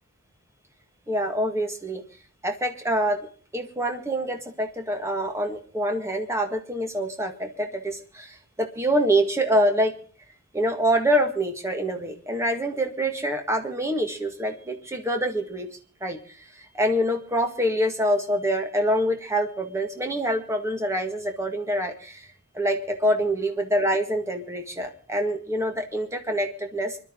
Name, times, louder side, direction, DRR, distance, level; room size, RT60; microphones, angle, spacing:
voice 1, 1.1-2.0 2.4-3.2 3.5-9.9 10.5-15.7 16.0-16.2 16.5-22.3 22.5-27.0, equal, 15° right, 4 dB, 1.8 m, -25 dB
25.0 x 12.0 x 3.8 m, 0.43 s
head